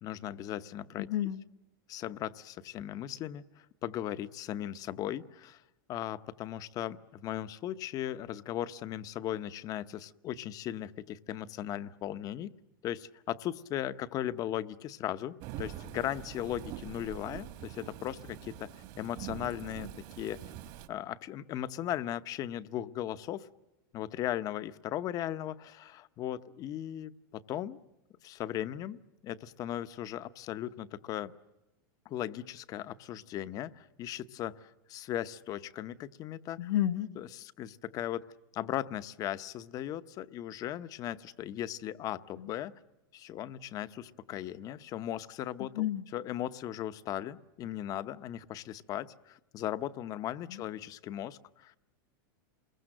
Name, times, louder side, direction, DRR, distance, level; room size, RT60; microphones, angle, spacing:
voice 1, 0.0-1.1 1.9-5.6 5.9-12.5 12.8-18.7 19.0-20.4 20.9-23.5 23.9-27.8 28.2-29.0 29.2-31.3 32.0-36.7 37.2-38.3 38.5-42.7 43.1-45.9 46.1-51.8, left 12 dB, 35° left, 14 dB, 0.9 m, -37 dB
voice 2, 1.0-1.4 36.6-37.1 42.4-42.5 45.6-46.0 50.5-50.6, left 12 dB, 85° left, 4 dB, 1.3 m, -31 dB
Thunderstorm / Rain, 15.4-20.9, right 12 dB, 45° right, 1.9 m, -44 dB
28.5 x 22.0 x 7.7 m, 0.99 s
supercardioid pair, 145°, 11 cm